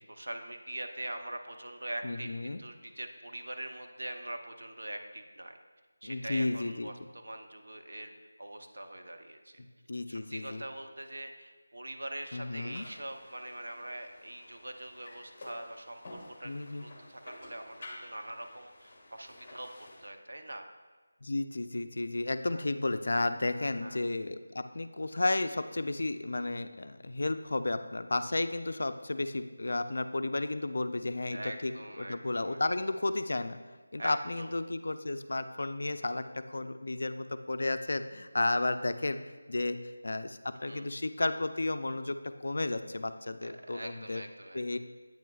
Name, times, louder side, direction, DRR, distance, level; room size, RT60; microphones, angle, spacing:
voice 1, 0.0-5.6 6.0-9.6 10.1-20.7 22.5-22.6 23.6-24.0 31.3-32.7 34.0-34.5 40.6-40.9 43.4-44.8, right 1 dB, 75° right, 5 dB, 0.7 m, -43 dB
voice 2, 2.0-2.6 6.0-6.9 9.9-10.6 12.3-12.9 16.4-16.9 21.2-33.6 33.9-39.2 39.5-39.8 40.0-44.2 44.5-44.8, left 2 dB, 60° left, 10 dB, 0.4 m, -33 dB
sound 1, 12.7-20.1, left 1 dB, 30° left, 1.0 m, -51 dB
8.6 x 6.0 x 2.4 m, 1.4 s
figure-of-eight pair, 175°, 0 cm